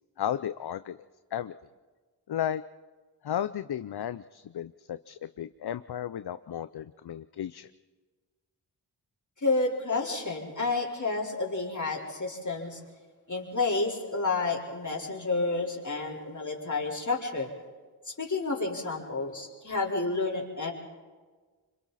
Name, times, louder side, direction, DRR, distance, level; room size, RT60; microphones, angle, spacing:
voice 1, 0.2-1.0 1.3-1.5 2.3-2.6 3.2-7.7, left 10 dB, 60° left, 13 dB, 0.6 m, -34 dB
voice 2, 9.4-12.8 13.3-17.5 18.1-20.7, left 3 dB, 40° left, -2 dB, 4.3 m, -30 dB
26.5 x 25.0 x 4.2 m, 1.4 s
cardioid pair, 45°, 43 cm